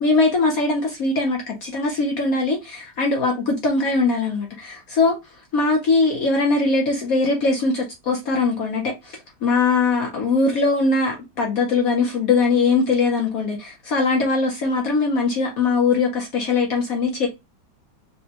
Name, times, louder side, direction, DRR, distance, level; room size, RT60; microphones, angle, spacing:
voice 1, 0.0-5.2 5.5-17.3, left 3 dB, 65° left, 0.9 m, -21 dB
4.1 x 2.2 x 2.8 m
omnidirectional pair, 2.2 m